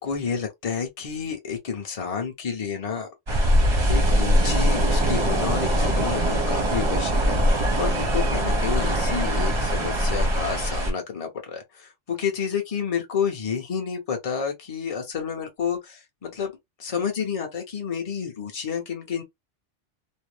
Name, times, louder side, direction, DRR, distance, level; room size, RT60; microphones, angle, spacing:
voice 1, 0.0-3.1 3.9-16.5 16.8-19.2, left 6 dB, 35° left, 0.7 m, -30 dB
sound 1, 3.3-10.9, equal, 30° right, 0.6 m, -22 dB
2.6 x 2.0 x 3.1 m
omnidirectional pair, 1.2 m